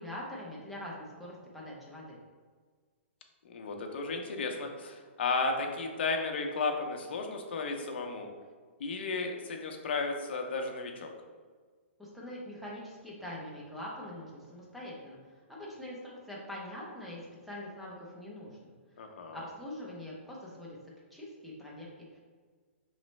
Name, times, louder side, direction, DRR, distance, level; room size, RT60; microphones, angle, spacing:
voice 1, 0.0-2.2 12.0-15.2 15.5-19.0 19.3-20.8 21.1-22.2, left 1 dB, ahead, -6 dB, 0.5 m, -43 dB
voice 2, 3.4-8.3 8.8-11.1 19.0-19.4, left 3 dB, 50° left, 3 dB, 0.7 m, -34 dB
5.0 x 3.1 x 3.1 m, 1.5 s
hypercardioid pair, 175°, 7 cm